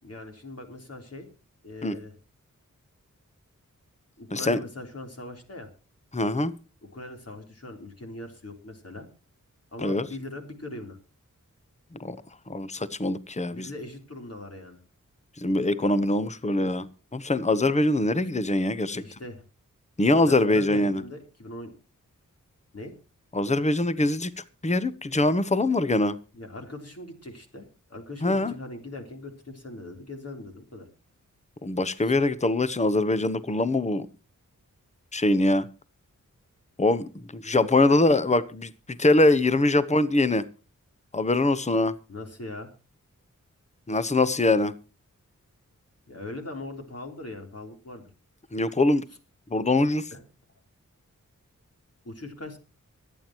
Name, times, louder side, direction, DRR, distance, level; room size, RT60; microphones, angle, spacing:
voice 1, 0.0-1.3 1.6-2.1 4.2-5.7 6.8-9.1 9.7-11.0 13.5-14.8 18.9-19.4 20.2-21.7 22.7-22.9 26.3-30.9 32.0-32.1 37.9-38.0 42.1-42.7 43.9-44.0 46.1-48.1 50.1-50.2 52.0-52.6, left 2 dB, 50° left, 3.6 m, -40 dB
voice 2, 6.1-6.5 9.8-10.1 12.0-12.2 12.5-13.7 15.4-16.9 17.1-19.0 20.0-21.0 23.3-24.3 24.6-26.2 28.2-28.5 31.6-34.1 35.1-35.7 36.8-38.7 39.0-40.4 41.1-41.9 43.9-44.7 48.5-49.0 49.5-50.1, left 2 dB, 20° left, 0.9 m, -23 dB
24.5 x 9.1 x 3.0 m
wide cardioid pair, 75°, 32 cm